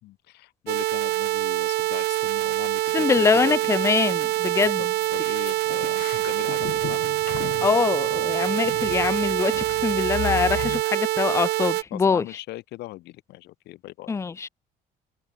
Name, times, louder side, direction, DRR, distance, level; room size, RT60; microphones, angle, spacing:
voice 1, 0.0-3.7 4.8-7.1 8.4-8.6 11.9-14.1, left 17 dB, 80° left, 2.0 m, -39 dB
sound 1, 0.7-11.8, right 17 dB, 75° right, 0.7 m, -25 dB
voice 2, 2.9-4.8 7.6-12.2 14.1-14.5, left 5 dB, 15° left, 0.4 m, -23 dB
sound 2, 3.8-3.9 4.2-4.3 4.6-4.7 5.0-10.8, left 12 dB, 60° left, 2.8 m, -36 dB
cardioid pair, 110°, 17 cm